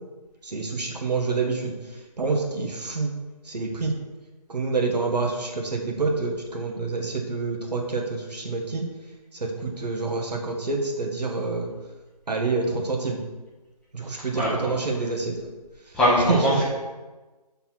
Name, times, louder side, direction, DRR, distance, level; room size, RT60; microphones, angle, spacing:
voice 1, 0.4-4.0 4.5-8.9 9.3-11.7 12.3-13.2 13.9-15.5 16.2-16.6, right 3 dB, 80° right, 1 dB, 1.4 m, -27 dB
voice 2, 14.3-14.7 15.9-16.6, equal, 5° left, -10 dB, 0.7 m, -21 dB
6.9 x 4.0 x 4.4 m, 1.2 s
figure-of-eight pair, 160°, 21 cm